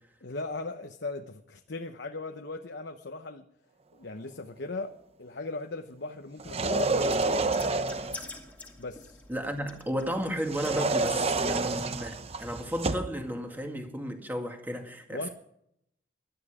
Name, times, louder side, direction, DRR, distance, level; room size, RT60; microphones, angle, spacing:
voice 1, 0.2-3.5 3.9-7.6 8.8-9.2 15.1-15.3, left 3 dB, 60° left, 1.0 m, -38 dB
sound 1, 6.4-8.3 10.5-13.2, right 3 dB, 30° right, 0.7 m, -28 dB
sound 2, 6.8-12.1, left 3 dB, 10° left, 2.2 m, -48 dB
voice 2, 9.3-15.3, equal, 10° right, 2.1 m, -33 dB
18.5 x 12.5 x 5.0 m
head